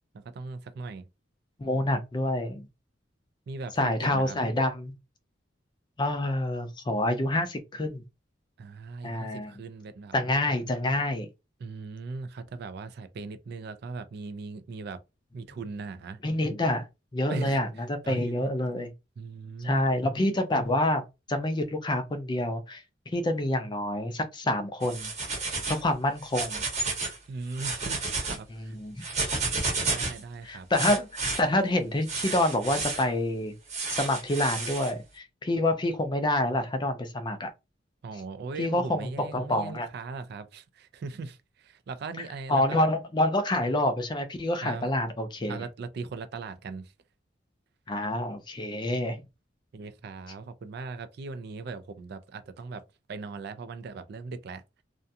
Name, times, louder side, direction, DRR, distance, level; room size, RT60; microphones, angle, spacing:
voice 1, 0.1-1.1 3.5-4.4 8.6-10.1 11.6-15.0 15.3-16.2 17.3-17.6 18.0-18.5 19.2-19.9 27.3-28.8 29.9-30.7 38.0-42.9 44.6-44.9 45.5-46.9 49.7-52.8 53.1-54.6, right 4 dB, 60° right, 0.3 m, -39 dB
voice 2, 1.6-2.7 3.8-4.9 6.0-8.0 9.0-9.5 10.1-11.3 16.2-16.9 17.1-18.9 19.6-22.8 23.1-25.1 25.7-26.6 28.6-29.0 30.4-33.5 33.9-37.5 38.6-39.9 42.5-45.6 47.9-49.2, left 1 dB, 25° left, 0.4 m, -27 dB
sound 1, 24.8-25.8 26.2-27.2 27.5-28.4 29.0-30.2 30.7-31.4 32.1-33.0 33.7-34.9, right 3 dB, 35° right, 0.9 m, -31 dB
2.4 x 2.2 x 2.7 m
head